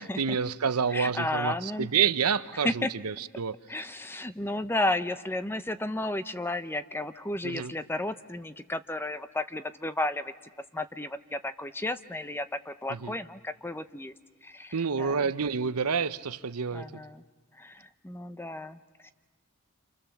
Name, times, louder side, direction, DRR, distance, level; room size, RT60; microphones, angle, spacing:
voice 1, 0.0-3.6 7.4-7.7 12.9-13.1 14.7-17.0, right 6 dB, 85° right, 13 dB, 0.8 m, -28 dB
voice 2, 0.9-1.9 2.6-2.9 3.7-10.3 10.7-14.1 14.4-15.1 16.7-17.2 17.5-19.1, left 2 dB, 10° left, 11 dB, 0.7 m, -33 dB
28.5 x 28.0 x 7.2 m, 1.4 s
head